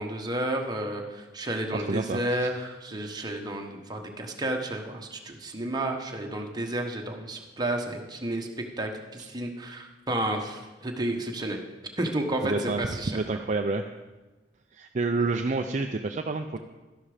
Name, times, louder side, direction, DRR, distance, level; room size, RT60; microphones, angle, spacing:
voice 1, 0.0-8.5 8.8-11.6 12.0-13.2, right 1 dB, 25° right, 2 dB, 1.3 m, -31 dB
voice 2, 1.7-2.5 9.2-9.3 12.4-13.8 14.7-16.6, right 3 dB, 40° right, 5 dB, 0.5 m, -29 dB
12.5 x 11.5 x 5.0 m, 1.1 s
head